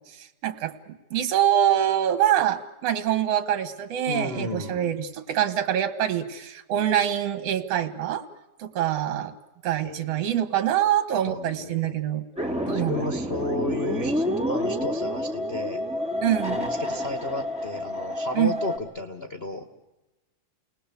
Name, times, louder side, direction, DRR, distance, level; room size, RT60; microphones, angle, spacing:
voice 1, 0.1-8.3 8.6-9.3 9.6-12.2 12.7-13.2 16.2-16.6 18.3-18.6, right 11 dB, 60° right, 9 dB, 2.7 m, -25 dB
voice 2, 4.1-4.9 9.8-10.3 11.2-11.9 12.7-15.8 16.4-19.6, left 2 dB, 60° left, 5 dB, 0.6 m, -33 dB
sound 1, 12.4-18.8, equal, ahead, 3.5 m, -29 dB
30.0 x 19.5 x 8.3 m, 1.0 s
omnidirectional pair, 3.3 m